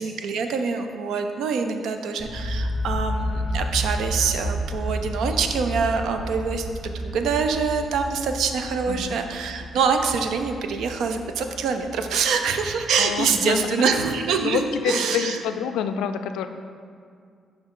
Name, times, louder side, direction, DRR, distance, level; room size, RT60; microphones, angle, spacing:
voice 1, 0.0-15.4, right 5 dB, 80° right, 6 dB, 0.5 m, -25 dB
sound 1, 2.2-14.0, equal, 20° left, 0.9 m, -31 dB
voice 2, 13.0-13.8 14.4-16.5, left 7 dB, 90° left, 9 dB, 0.3 m, -27 dB
10.0 x 3.5 x 3.7 m, 2.2 s
cardioid pair, 90°, 0 cm